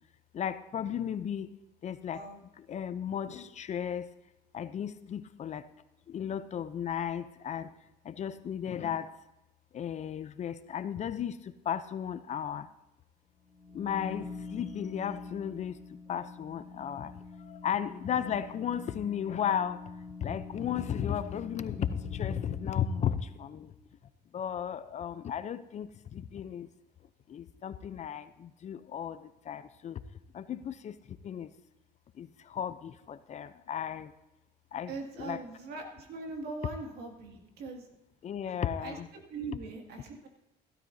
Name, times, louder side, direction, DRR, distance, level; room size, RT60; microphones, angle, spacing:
voice 1, 0.3-1.5 1.8-2.2 2.6-4.1 4.5-5.7 6.1-7.7 8.0-9.1 9.7-12.7 13.7-15.8 16.1-17.1 17.4-19.8 20.2-23.7 24.3-26.7 27.3-30.0 30.3-31.5 32.2-34.1 34.7-35.4 38.2-39.1, left 9 dB, 45° left, 13 dB, 0.6 m, -35 dB
voice 2, 2.1-2.4 34.9-37.8 38.8-39.0 39.3-40.3, right 3 dB, 70° right, 2 dB, 2.2 m, -41 dB
sound 1, 13.4-23.3, left 4 dB, 40° right, 3.1 m, -45 dB
15.5 x 12.5 x 2.7 m, 0.92 s
cardioid pair, 110°, 17 cm